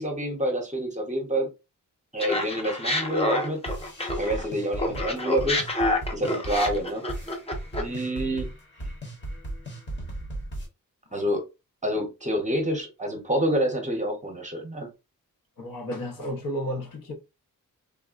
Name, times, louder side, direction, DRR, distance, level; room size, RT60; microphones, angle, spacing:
voice 1, 0.0-1.5 2.1-3.6 4.2-5.6 6.1-7.0 7.8-8.5 11.1-11.4 11.8-14.9, equal, 20° right, 0.7 m, -27 dB
Laughter, 2.2-4.5 4.8-8.0, left 1 dB, 20° left, 0.5 m, -28 dB
sound 1, 3.7-10.7, right 1 dB, 35° left, 0.9 m, -36 dB
voice 2, 15.6-17.1, equal, 75° left, 0.9 m, -33 dB
3.5 x 2.1 x 2.4 m
wide cardioid pair, 150°, 34 cm